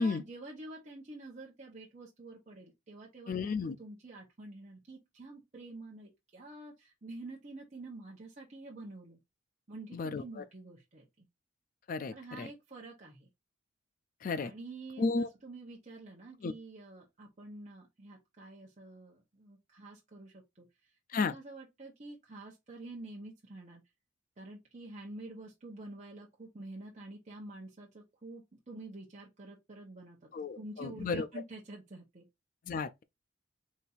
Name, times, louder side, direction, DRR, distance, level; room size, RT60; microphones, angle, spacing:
voice 1, 0.0-9.2 9.7-11.2 12.1-13.3 14.4-23.8 24.4-30.2 30.5-32.3, right 2 dB, 35° right, 0.9 m, -48 dB
voice 2, 3.3-3.8 9.9-10.4 11.9-12.5 14.2-14.5 15.0-15.3 16.4-16.5 21.1-21.3 30.3-31.3 32.7-33.0, left 4 dB, 45° left, 0.4 m, -33 dB
4.1 x 2.6 x 3.9 m
head